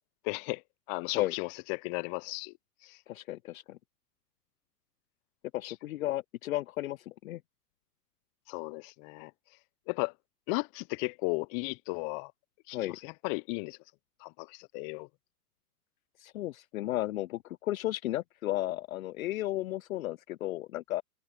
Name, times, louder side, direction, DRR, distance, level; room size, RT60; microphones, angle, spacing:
voice 1, 0.2-0.6 0.9-2.5 2.8-3.0 5.6-5.7 8.5-9.3 9.9-10.1 10.5-12.3 12.7-13.8 14.2-15.1, left 32 dB, 35° left, 1.1 m, -35 dB
voice 2, 3.1-3.8 5.5-7.4 12.7-13.0 16.2-21.0, left 15 dB, 60° left, 0.7 m, -34 dB
hypercardioid pair, 115°, 47 cm